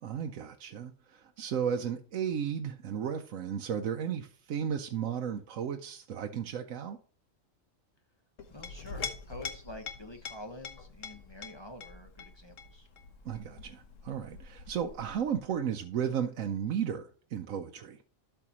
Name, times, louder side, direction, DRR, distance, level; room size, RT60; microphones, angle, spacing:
voice 1, 0.0-7.0 13.2-18.0, right 8 dB, 75° right, 1.1 m, -34 dB
Chink clink, 8.4-15.5, left 5 dB, 70° left, 1.5 m, -44 dB
voice 2, 8.5-12.9, left 1 dB, 20° left, 1.0 m, -47 dB
12.0 x 5.8 x 3.0 m
omnidirectional pair, 1.4 m